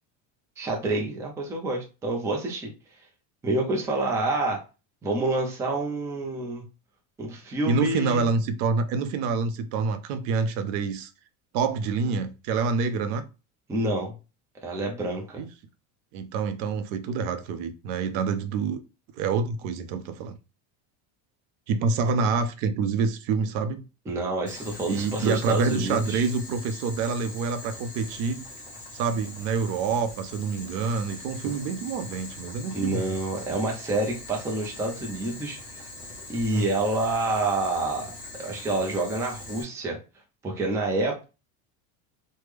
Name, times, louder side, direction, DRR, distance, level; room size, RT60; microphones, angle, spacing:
voice 1, 0.6-2.7 3.4-4.6 5.0-6.6 7.2-8.3 13.7-14.1 14.6-15.4 24.1-26.2 32.7-35.6 36.3-38.1 38.4-40.0 40.4-41.2, right 2 dB, 10° right, 0.4 m, -28 dB
voice 2, 7.7-11.1 11.5-13.3 15.4-15.5 16.1-18.8 19.1-20.4 21.7-23.9 24.9-28.5 28.9-33.2 36.5-36.7, right 5 dB, 65° right, 0.6 m, -27 dB
Boiling, 24.5-39.6, left 2 dB, 20° left, 0.9 m, -42 dB
3.3 x 2.1 x 3.3 m
cardioid pair, 160°, 40 cm